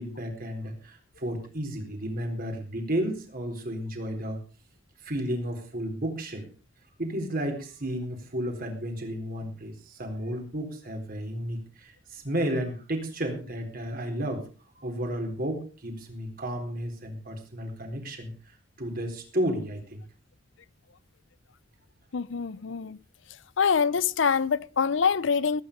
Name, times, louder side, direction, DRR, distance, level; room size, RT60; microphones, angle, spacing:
voice 1, 0.0-4.4 5.0-6.5 7.0-14.4 14.8-18.3 18.8-20.0, equal, 50° right, 4.1 m, -32 dB
voice 2, 22.1-23.0 23.6-25.6, left 6 dB, 70° left, 0.6 m, -25 dB
18.5 x 9.6 x 5.2 m
head